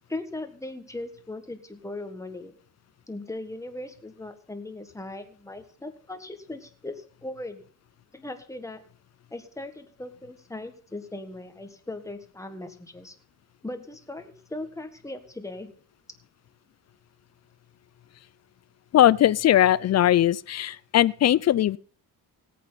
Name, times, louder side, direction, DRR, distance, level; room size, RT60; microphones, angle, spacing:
voice 1, 0.1-2.5 3.1-7.6 8.1-8.8 9.3-13.1 13.6-15.7, left 2 dB, 10° left, 1.7 m, -38 dB
voice 2, 18.9-21.8, left 12 dB, 45° left, 0.5 m, -20 dB
17.5 x 8.6 x 4.0 m
cardioid pair, 125°, 36 cm